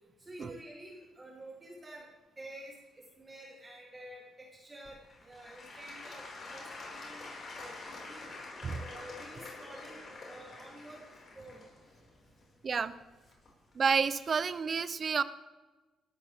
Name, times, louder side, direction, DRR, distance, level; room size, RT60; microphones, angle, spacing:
voice 1, 0.2-2.1 2.4-7.2 7.5-8.2 8.8-11.0 11.3-11.6, right 1 dB, 25° right, -3 dB, 3.3 m, -50 dB
Applause / Crowd, 4.8-13.7 14.3-14.4, left 3 dB, 45° left, 5.6 m, -47 dB
voice 2, 13.7-15.2, right 5 dB, 45° right, 14 dB, 0.8 m, -30 dB
18.0 x 13.0 x 3.6 m, 1.2 s
cardioid pair, 90°, 0 cm